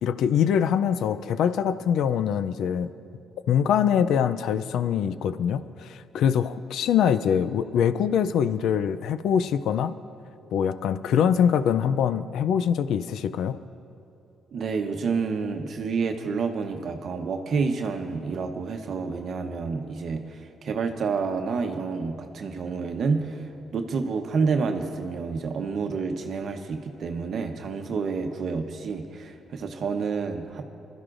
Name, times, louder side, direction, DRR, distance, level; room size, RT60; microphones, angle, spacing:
voice 1, 0.0-2.9 3.5-10.0 10.5-13.6, left 8 dB, 80° left, 13 dB, 0.4 m, -23 dB
voice 2, 14.5-30.6, right 5 dB, 60° right, 5 dB, 0.9 m, -29 dB
23.5 x 12.5 x 2.5 m, 2.6 s
cardioid pair, 90°, 0 cm